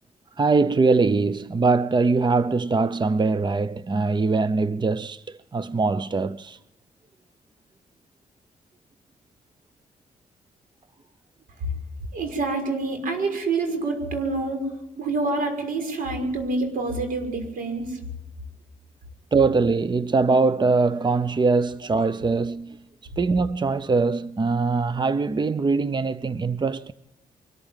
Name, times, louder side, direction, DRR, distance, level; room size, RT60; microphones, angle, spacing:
voice 1, 0.4-6.6 19.3-22.8 23.2-26.9, right 4 dB, 30° right, 0.8 m, -22 dB
voice 2, 12.1-14.7 15.0-18.0, right 3 dB, 80° right, 6.1 m, -27 dB
24.0 x 14.0 x 9.1 m
cardioid pair, 60°, 14 cm